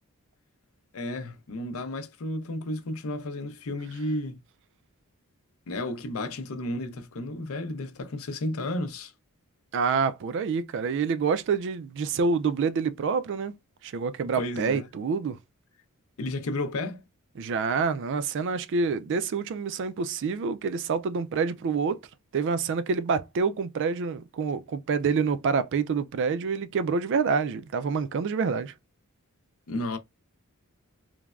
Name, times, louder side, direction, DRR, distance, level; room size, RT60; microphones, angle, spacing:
voice 1, 0.9-4.4 5.7-9.1 14.4-14.9 16.2-17.0 29.7-30.0, left 1 dB, 65° left, 0.5 m, -32 dB
voice 2, 9.7-13.5 13.8-15.4 17.4-22.0 22.3-28.7, right 5 dB, 55° right, 0.3 m, -27 dB
3.2 x 2.1 x 2.4 m
head